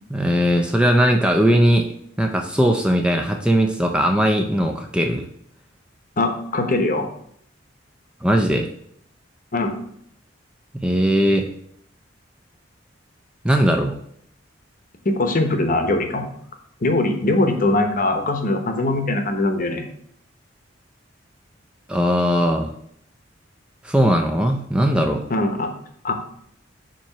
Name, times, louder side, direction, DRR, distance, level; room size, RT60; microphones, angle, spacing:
voice 1, 0.1-1.9 2.2-5.3 8.2-8.7 10.7-11.5 13.4-14.0 21.9-22.7 23.8-25.2, equal, 5° right, 3 dB, 0.4 m, -19 dB
voice 2, 6.2-7.1 9.5-9.8 15.0-16.3 16.8-19.9 25.3-25.7 26.0-26.1, left 2 dB, 45° left, 5 dB, 0.9 m, -21 dB
7.3 x 3.0 x 5.6 m, 0.68 s
head